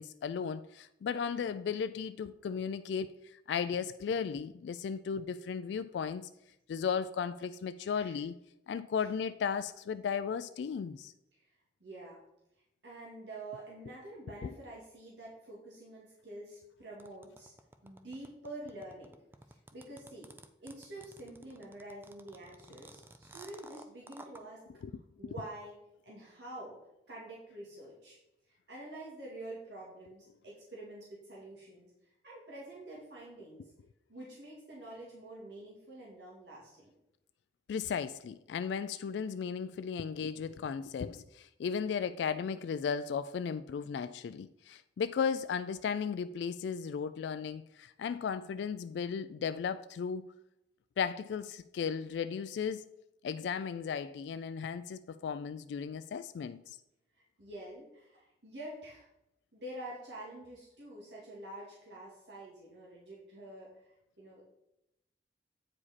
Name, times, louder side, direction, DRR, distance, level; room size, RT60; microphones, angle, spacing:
voice 1, 0.0-6.3 6.7-8.3 8.7-11.1 14.4-14.5 24.8-25.3 37.7-50.3 51.0-52.8 53.2-56.8, left 6 dB, 80° left, 0.3 m, -35 dB
voice 2, 7.8-8.2 9.0-9.2 11.3-11.5 11.8-12.2 12.8-17.5 17.8-19.2 19.5-20.3 20.6-24.6 25.2-26.8 27.1-28.2 28.5-33.7 34.1-36.9 57.4-59.1 59.5-64.4, right 1 dB, 80° right, 2.0 m, -47 dB
Thumbnail on Bottlecap, 17.0-24.4, right 2 dB, 10° right, 0.4 m, -53 dB
8.6 x 4.9 x 4.1 m
head